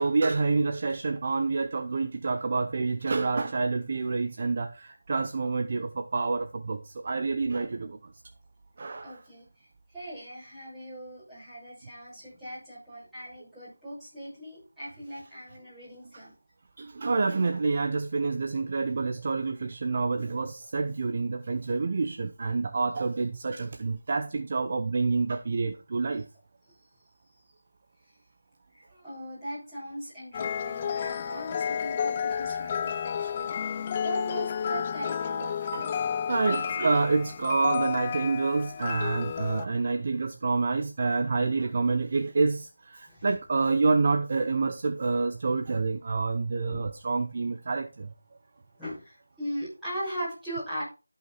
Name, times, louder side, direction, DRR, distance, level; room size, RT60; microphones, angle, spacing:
voice 1, 0.0-8.0 8.8-9.2 16.8-26.2 35.4-48.1, right 4 dB, 35° right, 0.8 m, -28 dB
voice 2, 9.0-9.7 9.9-16.3 28.9-35.5 43.1-43.3 46.7-46.9 48.8-50.8, equal, ahead, 6.6 m, -39 dB
sound 1, 30.3-39.7, left 7 dB, 20° left, 0.4 m, -31 dB
14.0 x 5.8 x 4.3 m
figure-of-eight pair, 170°, 0 cm